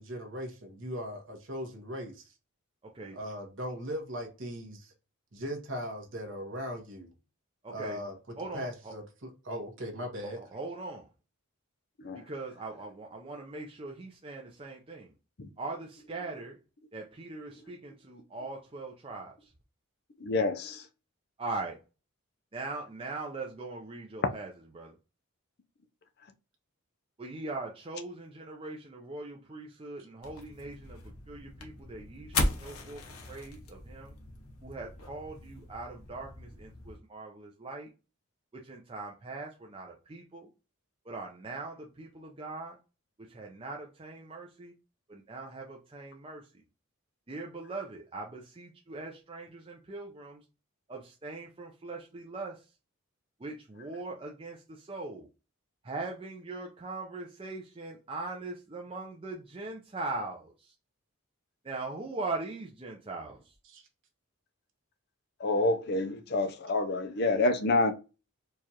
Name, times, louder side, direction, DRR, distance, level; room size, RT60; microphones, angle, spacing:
voice 1, 0.0-2.3 3.1-4.9 5.3-7.1 7.7-8.1 8.5-10.4 63.7-63.9, equal, 60° right, 1.2 m, -39 dB
voice 2, 2.8-3.2 7.6-8.1 8.4-8.9 10.2-11.1 12.1-15.1 15.6-16.5 16.9-19.5 21.4-21.8 22.5-25.0 27.2-34.1 34.6-37.9 38.5-40.5 41.1-42.8 43.2-44.7 45.1-46.6 47.3-50.4 50.9-52.7 53.4-55.3 55.8-60.7 61.6-63.5, right 3 dB, 25° right, 0.5 m, -41 dB
voice 3, 20.2-20.8 65.4-67.9, left 2 dB, 45° left, 0.5 m, -28 dB
sound 1, 30.2-37.0, left 2 dB, 80° left, 0.8 m, -37 dB
4.6 x 2.4 x 2.8 m
head